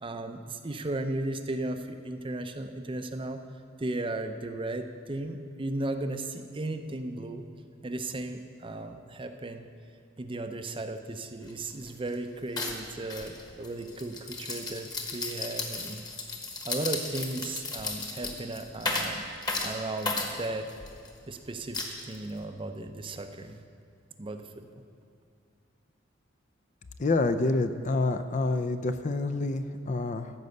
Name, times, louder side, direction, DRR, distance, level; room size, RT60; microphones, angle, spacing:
voice 1, 0.0-3.4 3.8-7.4 7.8-9.6 10.2-16.0 16.6-19.3 19.6-20.7 21.3-23.6 24.2-24.7, right 2 dB, 25° right, 7 dB, 0.6 m, -35 dB
sound 1, 11.4-11.5 11.8-12.1 12.6-21.1 21.7-22.4, left 3 dB, 20° left, 1.2 m, -34 dB
voice 2, 27.0-30.3, left 2 dB, 40° left, 10 dB, 0.5 m, -27 dB
13.5 x 5.4 x 7.9 m, 2.3 s
head